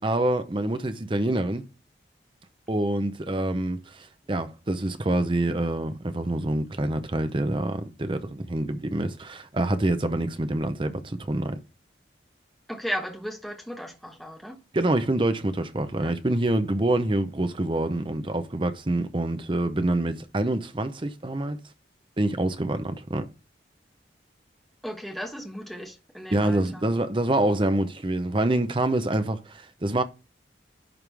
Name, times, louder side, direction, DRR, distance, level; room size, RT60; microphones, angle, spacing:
voice 1, 0.0-1.6 2.7-11.6 14.7-21.6 22.2-23.3 26.3-30.0, right 1 dB, 30° right, 0.7 m, -26 dB
voice 2, 12.7-14.6 16.0-16.1 24.8-26.9, equal, ahead, 1.2 m, -35 dB
11.0 x 3.7 x 3.4 m
head